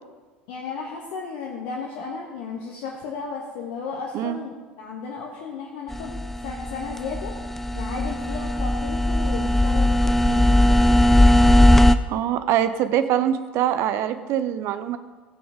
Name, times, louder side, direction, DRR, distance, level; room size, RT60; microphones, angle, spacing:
voice 1, 0.5-7.3 7.7-10.8, left 5 dB, 55° left, -1 dB, 1.4 m, -34 dB
sound 1, 5.9-11.9, left 1 dB, 5° left, 0.5 m, -18 dB
voice 2, 12.1-15.0, right 10 dB, 50° right, 11 dB, 0.8 m, -23 dB
16.0 x 7.0 x 5.1 m, 1.3 s
figure-of-eight pair, 70°, 6 cm